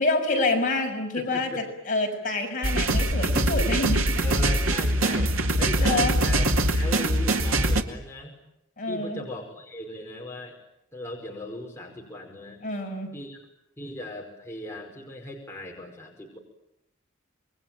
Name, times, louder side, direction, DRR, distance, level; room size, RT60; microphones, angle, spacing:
voice 1, 0.0-4.3 5.8-6.2 8.8-9.2 12.6-13.1, left 2 dB, 40° left, 1 dB, 6.4 m, -27 dB
voice 2, 1.1-1.6 4.2-8.3 8.9-10.6 10.9-12.6 13.1-13.4 13.8-16.4, left 1 dB, 15° left, -1 dB, 5.2 m, -38 dB
sound 1, 2.6-7.8, right 1 dB, 80° right, 2.4 m, -23 dB
27.0 x 22.5 x 9.2 m, 0.81 s
head